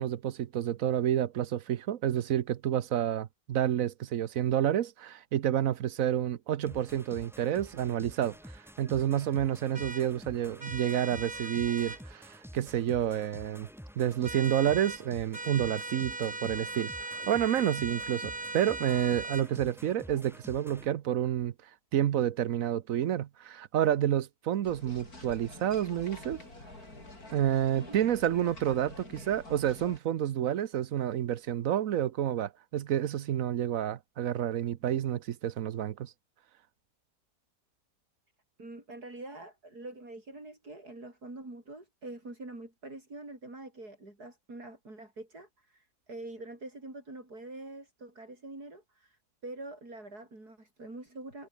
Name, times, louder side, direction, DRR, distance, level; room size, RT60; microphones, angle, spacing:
voice 1, 0.0-8.4 8.8-13.7 14.0-21.5 21.9-26.4 27.3-36.1, right 11 dB, 65° right, 1.1 m, -29 dB
sound 1, 6.7-20.9, equal, ahead, 6.7 m, -49 dB
sound 2, 9.7-10.0 10.6-12.0 14.2-15.0 15.3-19.5, right 3 dB, 30° right, 2.8 m, -39 dB
sound 3, 24.6-30.0, left 2 dB, 70° left, 7.8 m, -47 dB
voice 2, 38.6-51.5, right 2 dB, 80° right, 7.6 m, -45 dB
omnidirectional pair, 1.6 m